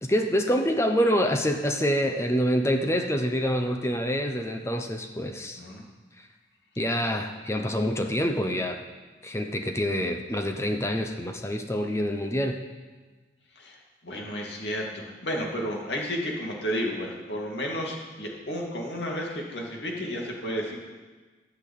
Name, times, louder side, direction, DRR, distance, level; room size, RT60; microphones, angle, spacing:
voice 1, 0.0-5.6 6.2-6.3 6.8-8.8 9.2-12.6, equal, 15° left, 5 dB, 0.7 m, -26 dB
voice 2, 14.0-20.8, equal, 70° left, -1 dB, 2.5 m, -32 dB
14.5 x 5.9 x 8.4 m, 1.3 s
head